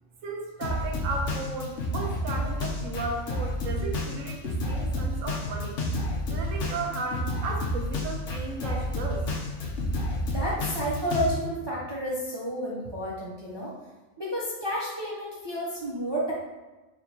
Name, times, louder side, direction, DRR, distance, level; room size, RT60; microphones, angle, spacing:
voice 1, 0.2-5.8 6.3-9.3, right 3 dB, 70° right, 1 dB, 1.1 m, -35 dB
Drum kit, 0.6-11.3, left 1 dB, 65° left, 1.0 m, -30 dB
voice 2, 10.3-13.7 14.2-16.3, equal, 35° right, -6 dB, 0.4 m, -31 dB
4.3 x 2.9 x 2.8 m, 1.2 s
omnidirectional pair, 1.4 m